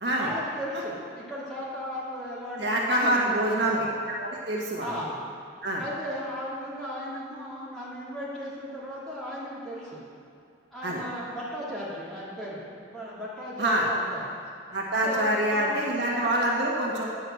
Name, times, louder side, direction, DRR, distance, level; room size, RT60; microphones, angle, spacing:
voice 1, 0.2-3.8 4.8-5.2 5.8-10.0 10.7-14.3 15.0-15.9, equal, ahead, -9 dB, 2.6 m, -36 dB
voice 2, 2.6-3.8 4.1-4.9 5.6-5.8 10.8-11.0 13.6-13.8 14.7-17.1, right 1 dB, 65° right, -3 dB, 1.6 m, -26 dB
9.5 x 6.4 x 7.7 m, 2.4 s
head